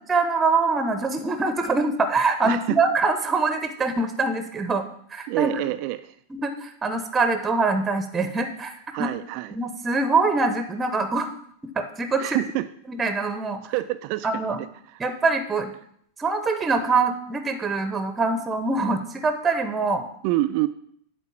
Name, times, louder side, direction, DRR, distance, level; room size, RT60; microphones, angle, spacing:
voice 1, 0.1-4.8 5.1-5.5 6.3-8.7 9.0-9.1 9.5-11.3 11.8-12.4 12.9-13.7 14.2-14.6 15.0-15.7 16.2-20.0, right 3 dB, 15° right, 8 dB, 0.8 m, -24 dB
voice 2, 2.4-2.8 5.3-6.2 8.9-9.6 12.2-12.7 13.7-14.4 14.9-15.0 20.2-20.7, right 17 dB, 45° right, 11 dB, 0.4 m, -26 dB
8.3 x 4.1 x 7.0 m, 0.67 s
figure-of-eight pair, 90°, 0 cm